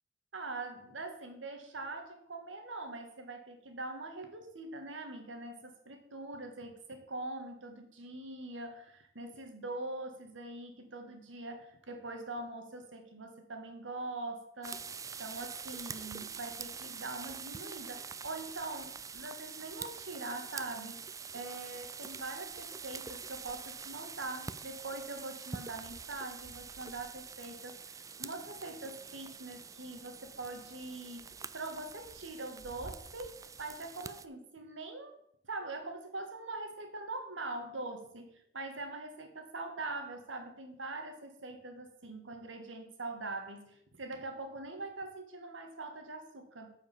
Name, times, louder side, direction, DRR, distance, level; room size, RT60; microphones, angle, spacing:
voice 1, 0.3-14.8 15.2-35.2 35.5-46.7, right 2 dB, 80° right, 5 dB, 1.8 m, -43 dB
Hail on a path in the mountains, 14.6-34.3, right 6 dB, 20° right, 0.3 m, -45 dB
8.9 x 5.1 x 7.0 m, 0.71 s
head